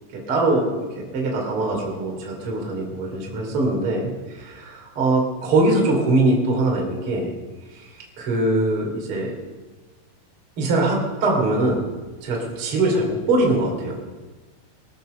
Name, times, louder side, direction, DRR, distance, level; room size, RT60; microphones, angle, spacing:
voice 1, 0.1-7.3 7.7-9.3 10.6-11.8 12.2-14.0, right 2 dB, 35° right, -1 dB, 2.9 m, -22 dB
22.0 x 9.2 x 6.7 m, 1.3 s
omnidirectional pair, 5.9 m